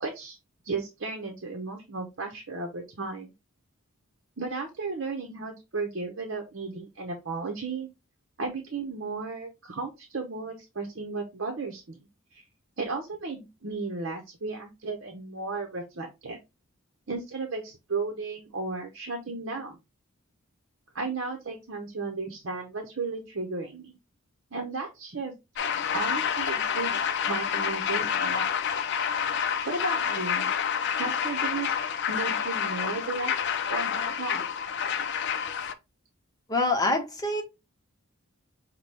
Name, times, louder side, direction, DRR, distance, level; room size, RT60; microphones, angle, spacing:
voice 1, 0.0-0.4 0.6-3.3 4.4-7.9 8.4-12.0 12.3-12.4 12.8-16.4 17.1-19.8 20.9-24.0 24.5-25.3 25.9-28.5 29.6-30.5 31.0-31.8 32.1-33.3 33.7-34.4, right 3 dB, 60° right, 0.8 m, -34 dB
sound 1, 25.6-35.7, left 7 dB, 55° left, 0.5 m, -28 dB
voice 2, 36.5-37.4, left 2 dB, 20° left, 0.9 m, -25 dB
5.7 x 2.2 x 3.3 m
head